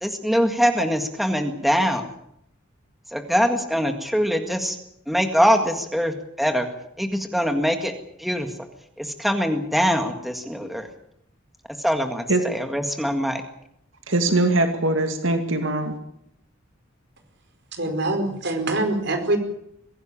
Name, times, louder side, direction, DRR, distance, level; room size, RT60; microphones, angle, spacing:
voice 1, 0.0-2.1 3.1-4.8 5.1-6.7 7.0-7.9 8.2-8.5 9.0-10.9 11.8-13.4, equal, ahead, 5 dB, 1.8 m, -23 dB
voice 2, 14.1-15.9, right 2 dB, 75° right, 6 dB, 2.4 m, -21 dB
voice 3, 17.7-19.4, right 2 dB, 60° right, 7 dB, 4.9 m, -24 dB
23.0 x 16.5 x 8.9 m, 0.75 s
head